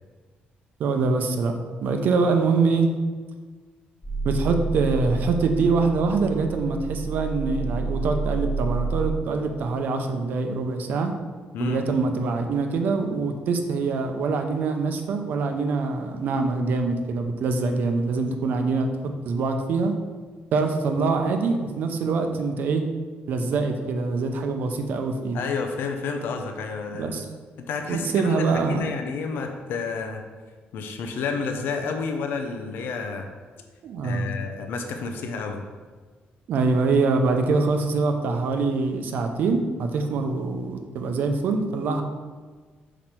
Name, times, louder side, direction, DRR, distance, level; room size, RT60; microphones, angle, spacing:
voice 1, 0.8-1.5 1.8-2.9 4.2-11.1 11.6-18.9 19.3-19.9 20.5-22.8 23.3-25.4 26.9-27.3 27.9-28.9 33.8-34.3 36.5-42.0, right 4 dB, 60° right, 5 dB, 0.7 m, -24 dB
sound 1, 4.0-9.3, right 3 dB, 25° left, 1.5 m, -29 dB
voice 2, 25.3-27.2 27.7-30.2 30.7-33.3 34.0-35.6, left 5 dB, 75° left, 4 dB, 0.6 m, -30 dB
6.1 x 5.0 x 4.4 m, 1.5 s
cardioid pair, 175°, 4 cm